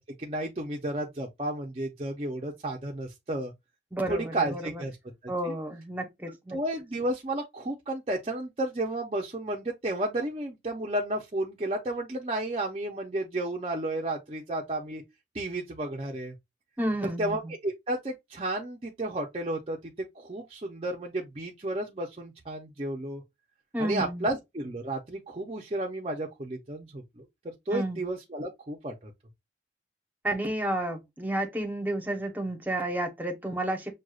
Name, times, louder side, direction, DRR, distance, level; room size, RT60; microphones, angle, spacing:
voice 1, 0.2-3.5 4.1-5.0 5.4-5.6 6.5-15.0 15.3-16.3 17.0-23.2 23.8-29.1, right 1 dB, 30° right, 0.6 m, -32 dB
voice 2, 3.9-4.8 5.3-6.6 16.8-17.4 23.7-24.3 27.7-28.0 30.2-33.9, right 1 dB, 10° right, 0.9 m, -31 dB
6.2 x 2.3 x 2.4 m
head